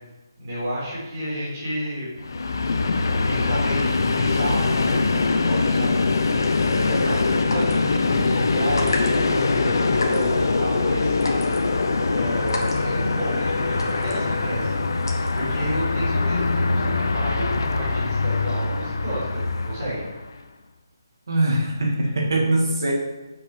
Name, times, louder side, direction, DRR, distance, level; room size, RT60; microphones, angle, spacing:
voice 1, 0.4-2.1 3.3-6.0 6.6-7.3 7.5-11.1 12.1-14.9 15.3-20.0, equal, 30° right, -7 dB, 3.1 m, -31 dB
Train, 2.2-20.3, left 3 dB, 60° left, 0.7 m, -23 dB
sound 1, 6.4-15.8, left 2 dB, 80° left, 1.6 m, -35 dB
voice 2, 21.3-22.9, right 1 dB, 60° right, -1 dB, 1.8 m, -22 dB
6.0 x 5.4 x 6.6 m, 1.1 s
hypercardioid pair, 175°, 2 cm